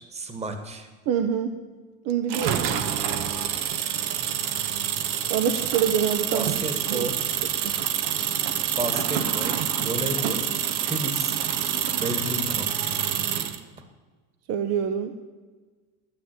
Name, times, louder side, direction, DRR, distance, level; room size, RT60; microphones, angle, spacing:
voice 1, 0.0-0.9 6.3-7.1 8.7-10.4 10.8-11.4 12.0-12.7, right 1 dB, 20° right, 7 dB, 1.9 m, -32 dB
voice 2, 1.1-1.6 2.0-2.9 5.3-6.5 6.9-7.1 7.6-7.8 14.5-15.2, right 8 dB, 50° right, 8 dB, 1.0 m, -25 dB
sound 1, 2.3-13.6, right 9 dB, 70° right, 1.3 m, -27 dB
12.5 x 9.5 x 8.4 m, 1.4 s
supercardioid pair, 130°, 33 cm